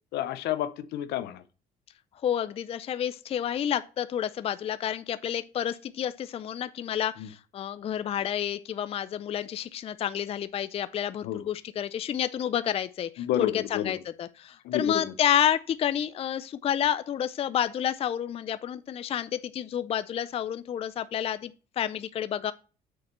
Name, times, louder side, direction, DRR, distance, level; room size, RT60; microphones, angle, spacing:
voice 1, 0.1-1.4 7.2-7.3 11.2-11.5 13.2-13.9 14.6-15.1, left 11 dB, 80° left, 0.8 m, -30 dB
voice 2, 2.2-22.5, left 10 dB, 35° left, 0.4 m, -30 dB
6.5 x 4.2 x 6.5 m
cardioid pair, 110°, 17 cm